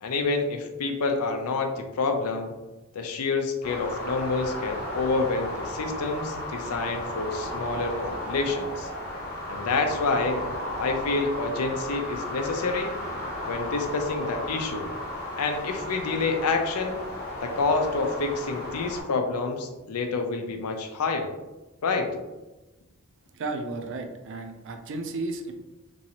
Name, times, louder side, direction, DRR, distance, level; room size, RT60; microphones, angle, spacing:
voice 1, 0.0-2.5 2.9-8.9 9.5-10.5 10.8-12.9 13.4-14.9 15.4-17.0 17.4-21.3 21.8-22.1, left 3 dB, 85° left, 5 dB, 0.5 m, -28 dB
sound 1, 3.6-19.0, left 1 dB, 45° left, 1.0 m, -34 dB
voice 2, 23.3-25.5, right 3 dB, 60° right, 5 dB, 0.4 m, -33 dB
3.0 x 2.7 x 2.8 m, 1.1 s
head